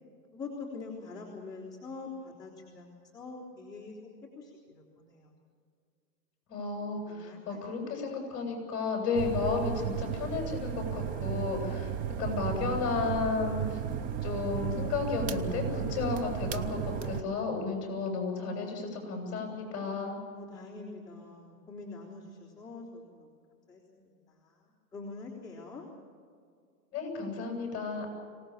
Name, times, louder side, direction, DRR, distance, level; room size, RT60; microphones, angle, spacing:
voice 1, 0.3-4.0 4.4-5.3 7.1-7.9 20.3-23.3 23.7-24.1 24.4-24.6 24.9-25.8, left 3 dB, 10° left, -7 dB, 3.8 m, -44 dB
voice 2, 6.5-11.9 12.2-13.8 14.2-20.2 26.9-28.1, left 4 dB, 30° left, 2 dB, 7.9 m, -33 dB
sound 1, 9.1-17.2, right 9 dB, 20° right, 0.5 m, -34 dB
25.0 x 18.5 x 7.5 m, 2.2 s
hypercardioid pair, 140°, 47 cm